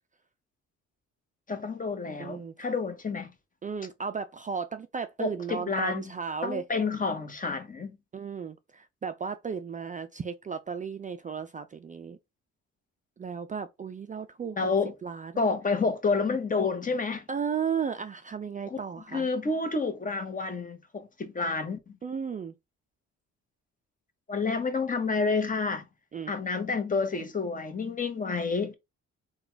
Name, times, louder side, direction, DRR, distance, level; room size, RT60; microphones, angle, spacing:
voice 1, 1.5-3.3 5.2-6.0 6.4-7.9 14.6-14.9 15.4-17.2 18.7-18.8 19.1-22.0 24.3-25.8 26.3-28.8, left 4 dB, 25° left, 1.0 m, -29 dB
voice 2, 2.2-2.7 3.6-6.6 8.1-12.2 13.2-14.7 15.0-15.5 17.3-19.3 22.0-22.5 26.1-26.3, right 6 dB, 25° right, 0.4 m, -35 dB
3.9 x 2.4 x 4.4 m
cardioid pair, 90°, 30 cm